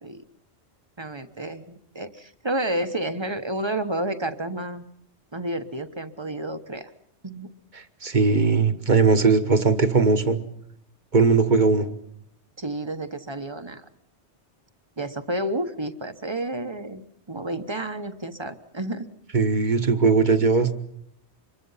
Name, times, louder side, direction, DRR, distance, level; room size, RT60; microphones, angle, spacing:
voice 1, 1.0-4.8 5.3-6.9 7.2-7.5 12.6-13.9 15.0-19.1, right 1 dB, 25° right, 10 dB, 1.1 m, -30 dB
voice 2, 7.7-10.4 11.1-11.9 19.3-20.7, right 4 dB, 45° right, 9 dB, 1.4 m, -19 dB
26.0 x 22.5 x 5.6 m, 0.70 s
omnidirectional pair, 1.1 m